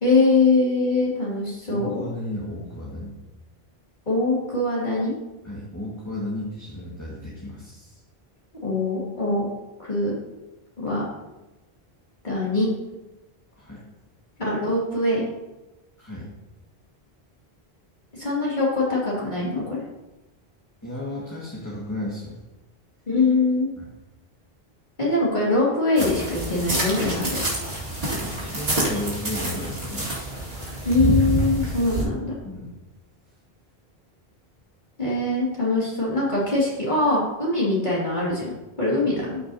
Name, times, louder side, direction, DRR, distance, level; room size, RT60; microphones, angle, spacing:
voice 1, 0.0-1.9 4.1-5.1 8.6-9.5 9.8-10.1 10.8-11.1 12.2-12.7 14.4-15.2 18.1-19.8 23.1-23.7 25.0-27.4 30.8-32.4 35.0-39.4, left 2 dB, 50° left, -7 dB, 2.5 m, -23 dB
voice 2, 1.7-3.2 5.4-8.0 13.6-13.8 16.0-16.3 20.8-22.4 23.8-23.9 28.2-30.1 31.6-31.8 32.4-32.7, left 1 dB, 15° left, -6 dB, 1.7 m, -33 dB
sound 1, 26.0-32.0, right 1 dB, 75° right, 2.3 m, -27 dB
13.0 x 6.2 x 2.8 m, 1.1 s
omnidirectional pair, 1.0 m